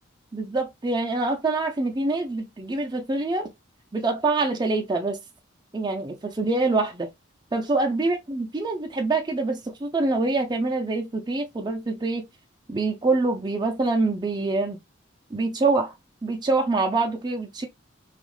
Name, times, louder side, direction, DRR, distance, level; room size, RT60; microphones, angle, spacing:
voice 1, 0.3-3.5 3.9-5.2 5.7-7.1 7.5-12.2 12.7-14.8 15.3-15.9 16.2-17.7, right 3 dB, 20° right, 0.4 m, -25 dB
3.0 x 2.4 x 3.0 m
head